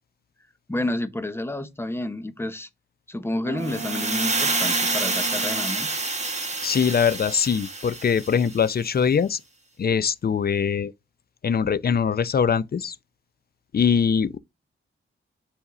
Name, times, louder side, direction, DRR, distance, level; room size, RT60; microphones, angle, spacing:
voice 1, 0.7-2.7 3.1-6.0, left 1 dB, 10° left, 0.8 m, -30 dB
Boat Water vehicle, 3.4-6.1, right 5 dB, 75° right, 0.7 m, -36 dB
sound 1, 3.6-8.7, right 3 dB, 35° right, 1.7 m, -27 dB
voice 2, 6.6-9.4 9.8-10.9 11.4-13.0 13.7-14.4, left 7 dB, 50° left, 0.6 m, -22 dB
7.2 x 3.5 x 3.8 m
wide cardioid pair, 120°, 20 cm